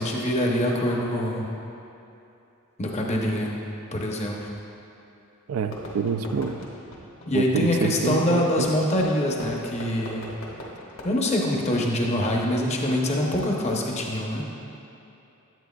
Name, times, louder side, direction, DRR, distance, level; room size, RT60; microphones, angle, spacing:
voice 1, 0.0-1.5 2.8-3.6 3.9-4.5 7.3-10.3 11.0-14.4, left 1 dB, 30° left, -1 dB, 0.7 m, -24 dB
voice 2, 5.5-6.6 7.3-8.7, right 6 dB, 75° right, 8 dB, 0.4 m, -27 dB
Fireworks, 5.7-12.2, left 1 dB, 60° left, 1.3 m, -41 dB
9.1 x 8.7 x 2.3 m, 2.9 s
head